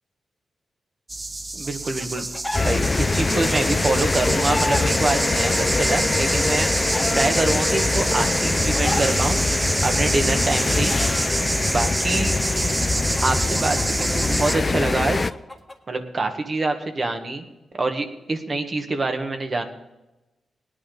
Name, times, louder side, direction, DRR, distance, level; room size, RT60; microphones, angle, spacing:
sound 1, 1.1-14.5, right 2 dB, 25° right, 0.5 m, -27 dB
voice 1, 1.5-2.3 2.6-6.7 7.1-9.4 9.8-10.9 11.7-12.3 13.2-15.2 15.9-17.5 17.7-19.6, right 2 dB, 45° right, 5 dB, 1.7 m, -25 dB
Chicken rooster, 1.6-2.8 3.9-4.9 5.9-7.3 8.2-9.2 10.2-11.3 12.4-15.7, left 1 dB, 15° left, 1.7 m, -32 dB
sound 2, 2.5-15.3, left 3 dB, 40° left, 0.5 m, -23 dB
18.5 x 9.9 x 4.0 m, 1.0 s
cardioid pair, 50°, 0 cm